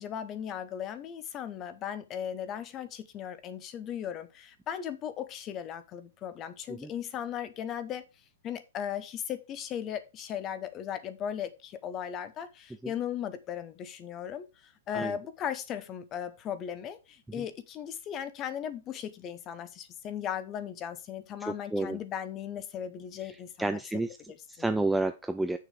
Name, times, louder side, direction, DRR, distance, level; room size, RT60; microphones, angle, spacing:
voice 1, 0.0-8.0 8.4-23.8 24.3-24.4, left 9 dB, 20° left, 0.9 m, -37 dB
voice 2, 21.4-22.0 23.6-24.2 24.5-25.6, right 2 dB, 5° right, 0.3 m, -30 dB
7.3 x 6.6 x 4.9 m
hypercardioid pair, 170°, 0 cm